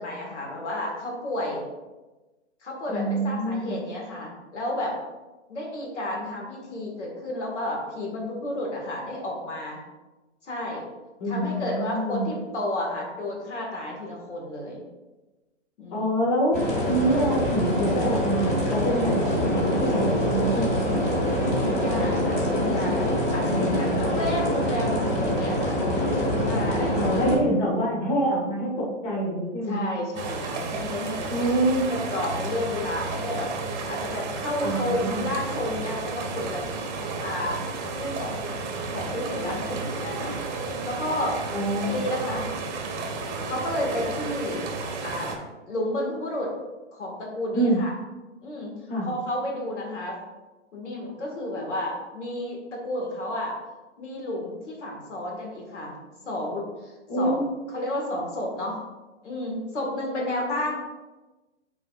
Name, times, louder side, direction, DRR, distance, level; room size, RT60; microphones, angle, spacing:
voice 1, 0.0-1.6 2.6-5.0 5.5-9.8 10.4-10.9 11.2-14.8 15.8-16.1 21.4-23.1 23.3-25.8 26.4-27.0 29.6-31.6 31.9-33.5 33.9-36.6 37.2-37.6 37.9-38.4 38.9-40.4 40.8-41.4 41.9-42.5 43.4-44.7 45.0-45.3 45.7-46.5 46.9-47.9 48.4-48.7 49.0-50.2 50.7-53.6 54.0-56.0 56.2-57.4 57.7-58.8 59.2-60.8, left 1 dB, 70° left, -1 dB, 2.1 m, -31 dB
voice 2, 2.9-3.8 11.2-12.3 15.9-16.6 16.9-21.0 23.4-24.2 26.9-29.9 31.3-31.9 34.6-35.3 41.5-42.0 47.5-47.8 48.9-49.1 57.1-57.4, right 1 dB, 40° left, -3 dB, 1.9 m, -26 dB
sound 1, 16.5-27.4, equal, 20° left, 1.8 m, -25 dB
sound 2, 30.1-45.3, right 3 dB, 35° right, 1.2 m, -32 dB
8.1 x 4.7 x 2.5 m, 1.1 s
hypercardioid pair, 135°, 36 cm